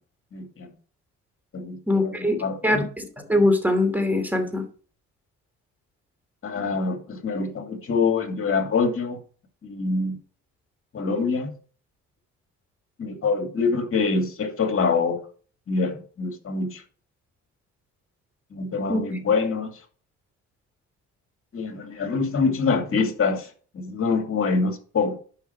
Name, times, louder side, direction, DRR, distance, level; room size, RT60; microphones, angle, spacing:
voice 1, 0.3-0.7 1.5-2.9 6.4-9.2 9.6-10.2 10.9-11.5 13.0-15.2 15.7-16.8 18.5-19.7 21.5-23.5 23.7-25.2, left 4 dB, 45° left, 2.4 m, -25 dB
voice 2, 1.9-2.4 2.6-4.6 18.9-19.0, left 1 dB, 5° right, 2.7 m, -22 dB
11.5 x 5.5 x 4.5 m
cardioid pair, 90°, 30 cm